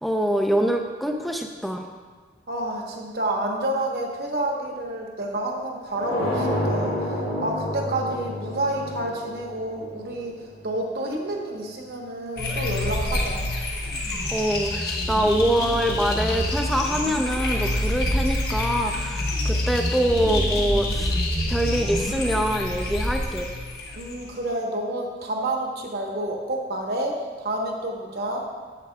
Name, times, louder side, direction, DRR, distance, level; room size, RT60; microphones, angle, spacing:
voice 1, 0.0-1.9 14.3-21.2 21.5-23.5, equal, ahead, 3 dB, 0.4 m, -24 dB
voice 2, 2.5-7.1 7.4-10.4 10.6-13.4 23.9-28.4, right 1 dB, 65° right, 0 dB, 1.0 m, -29 dB
sound 1, 5.9-10.7, left 1 dB, 85° left, 2.2 m, -29 dB
sound 2, 12.4-24.3, left 1 dB, 65° left, 1.1 m, -26 dB
8.3 x 8.0 x 2.2 m, 1.5 s
head